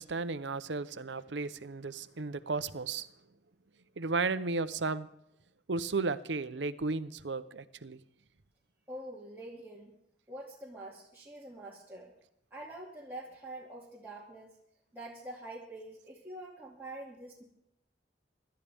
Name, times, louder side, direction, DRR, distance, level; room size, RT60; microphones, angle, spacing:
voice 1, 0.0-3.1 4.0-5.1 5.7-8.0, right 3 dB, 90° right, 13 dB, 0.9 m, -34 dB
voice 2, 8.9-9.9 10.3-12.1 12.5-14.5 14.9-17.4, right 1 dB, 10° right, -6 dB, 2.5 m, -45 dB
25.5 x 12.5 x 3.6 m, 0.80 s
head